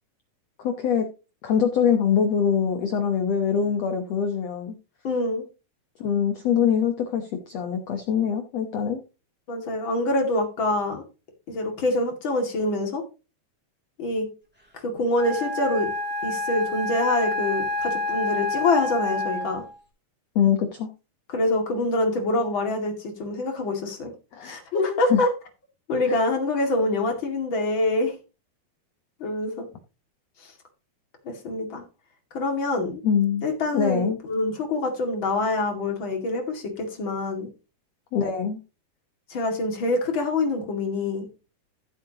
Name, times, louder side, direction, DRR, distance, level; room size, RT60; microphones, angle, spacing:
voice 1, 0.6-1.1 1.4-4.7 6.0-9.0 20.3-20.9 24.3-24.6 25.1-25.2 26.1-26.2 33.0-33.5 33.7-34.2 38.1-38.6, left 7 dB, 75° left, 6 dB, 1.5 m, -23 dB
voice 2, 5.0-5.4 9.5-11.0 11.5-13.0 14.0-14.3 14.7-15.9 16.2-19.6 21.3-24.1 24.4-25.3 25.9-28.1 29.2-29.6 30.4-30.5 31.2-31.8 32.3-33.0 33.4-37.5 39.3-41.3, left 2 dB, 40° left, 3 dB, 2.3 m, -25 dB
Wind instrument woodwind instrument, 15.1-19.7, left 2 dB, 5° right, 2.5 m, -28 dB
15.0 x 7.7 x 2.9 m, 0.31 s
omnidirectional pair, 4.4 m